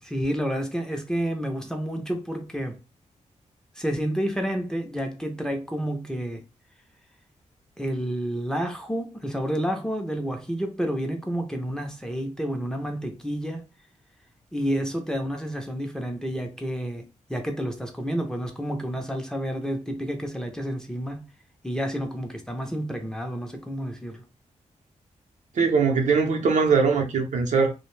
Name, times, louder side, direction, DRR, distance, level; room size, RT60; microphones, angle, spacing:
voice 1, 0.0-2.8 3.8-6.4 7.8-13.6 14.5-21.2 21.6-24.3, equal, 5° left, 0.5 m, -30 dB
voice 2, 25.6-27.7, right 5 dB, 70° right, 0.6 m, -21 dB
2.5 x 2.1 x 3.1 m
wide cardioid pair, 140°, 13 cm